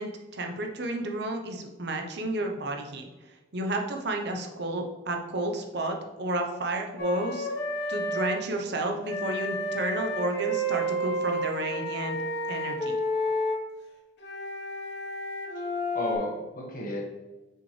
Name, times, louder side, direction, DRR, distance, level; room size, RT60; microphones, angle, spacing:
voice 1, 0.0-3.1 3.5-7.5 7.9-12.2 12.5-13.0, right 1 dB, 65° right, 3 dB, 0.9 m, -31 dB
Wind instrument woodwind instrument, 7.0-8.4 9.0-13.6 14.2-16.1, equal, 65° left, 1.2 m, -31 dB
voice 2, 15.5-17.0, left 1 dB, 50° left, -1 dB, 1.4 m, -34 dB
6.2 x 5.3 x 3.3 m, 1.1 s
head